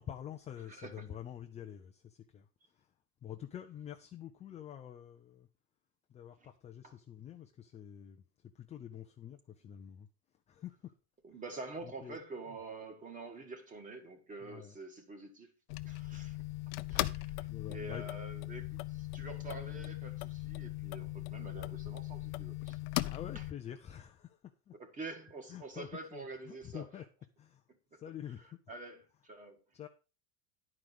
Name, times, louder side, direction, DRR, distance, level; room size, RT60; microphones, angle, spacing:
voice 1, 0.0-2.9 3.2-5.5 6.1-8.2 8.5-10.1 10.5-10.7 11.8-12.2 14.4-14.7 17.5-18.1 23.1-24.7 25.5-27.1 27.4-27.6 27.9-28.5 29.7-29.9, left 10 dB, 15° left, 0.4 m, -47 dB
voice 2, 0.7-1.1 6.4-6.5 6.8-7.0 11.2-15.5 15.8-16.4 16.9-23.4 24.8-26.8 27.9-28.0 28.7-29.6, right 3 dB, 20° right, 1.7 m, -47 dB
sound 1, 15.7-23.5, left 19 dB, 55° left, 0.6 m, -39 dB
11.0 x 5.0 x 6.0 m
supercardioid pair, 150°, 39 cm